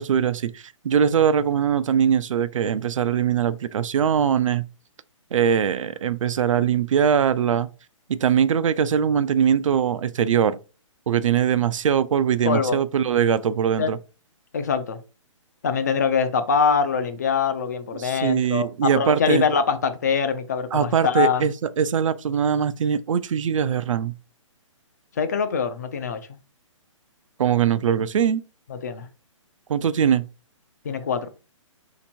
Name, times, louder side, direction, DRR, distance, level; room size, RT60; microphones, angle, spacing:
voice 1, 0.0-4.6 5.3-7.7 8.1-10.6 11.1-14.0 18.0-19.4 20.7-24.1 27.4-28.4 29.7-30.2, right 8 dB, 75° right, 0.4 m, -21 dB
voice 2, 12.4-12.8 13.8-13.9 14.5-15.0 15.6-21.5 25.2-26.2 28.7-29.1 30.8-31.3, left 6 dB, 30° left, 0.4 m, -23 dB
3.4 x 2.9 x 4.3 m
hypercardioid pair, 170°, 17 cm